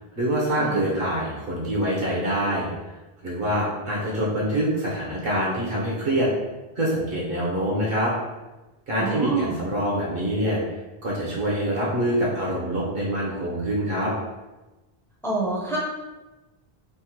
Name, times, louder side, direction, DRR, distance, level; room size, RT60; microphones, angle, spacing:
voice 1, 0.2-2.7 3.2-6.3 6.8-8.1 8.9-10.6 11.0-14.1, right 1 dB, 65° right, -5 dB, 0.9 m, -25 dB
voice 2, 9.0-9.6 15.2-15.8, right 3 dB, 5° left, -5 dB, 0.4 m, -27 dB
3.4 x 2.1 x 2.8 m, 1.1 s
omnidirectional pair, 1.0 m